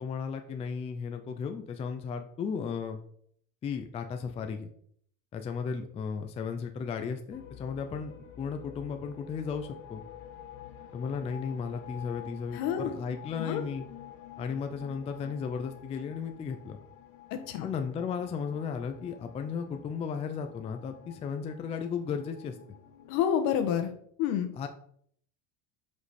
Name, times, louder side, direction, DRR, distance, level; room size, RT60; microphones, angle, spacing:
voice 1, 0.0-3.0 3.6-4.7 5.3-8.1 8.4-10.0 10.9-13.9 14.4-16.8 17.6-22.6 24.5-24.7, left 6 dB, 15° left, 6 dB, 0.4 m, -35 dB
sound 1, 7.3-23.1, left 10 dB, 85° left, 1.4 m, -49 dB
voice 2, 12.5-13.0 13.4-13.6 17.3-17.7 23.1-23.9 24.2-24.5, left 9 dB, 65° left, 7 dB, 1.3 m, -28 dB
7.9 x 5.3 x 4.2 m, 0.63 s
cardioid pair, 160°, 38 cm